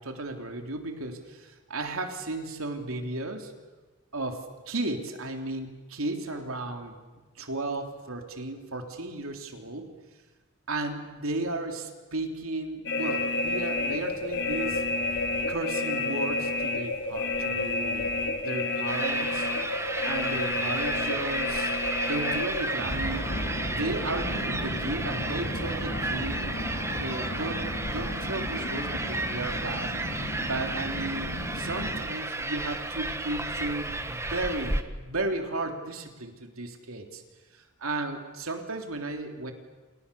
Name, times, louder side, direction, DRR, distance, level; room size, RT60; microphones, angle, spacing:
voice 1, 0.0-3.5 4.1-6.9 7.4-9.9 10.7-14.8 15.5-18.1 18.4-19.5 20.0-21.8 22.1-23.2 23.7-26.4 26.9-30.0 30.4-37.2 37.5-39.5, right 2 dB, 70° right, 4 dB, 3.4 m, -34 dB
sound 1, 12.9-32.1, left 2 dB, 55° left, 3.8 m, -31 dB
sound 2, 18.9-34.8, right 2 dB, 15° right, 1.5 m, -33 dB
30.0 x 28.0 x 7.1 m, 1.2 s
head